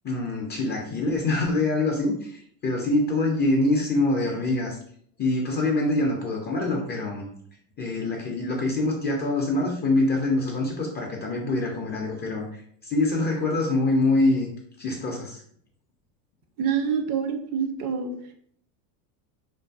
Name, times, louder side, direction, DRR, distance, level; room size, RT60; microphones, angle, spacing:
voice 1, 0.0-4.8 5.2-7.3 7.8-14.5 14.8-15.4, left 2 dB, 25° left, 0 dB, 0.3 m, -25 dB
voice 2, 16.6-18.3, right 7 dB, 45° right, 6 dB, 0.4 m, -27 dB
2.5 x 2.5 x 2.3 m, 0.63 s
supercardioid pair, 95°, 48 cm